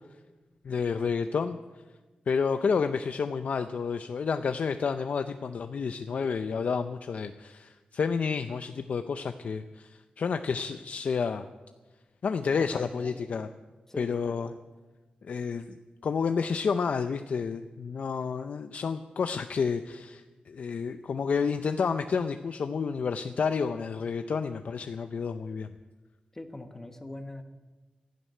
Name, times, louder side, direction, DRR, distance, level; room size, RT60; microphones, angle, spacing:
voice 1, 0.6-1.6 2.3-11.4 12.2-13.5 14.0-14.5 15.2-15.7 16.0-25.7, left 5 dB, 55° left, 8 dB, 0.5 m, -30 dB
voice 2, 12.6-13.3 13.9-14.6 26.3-27.4, left 1 dB, 15° left, 6 dB, 1.2 m, -42 dB
12.5 x 11.0 x 9.3 m, 1.2 s
wide cardioid pair, 170°, 3 cm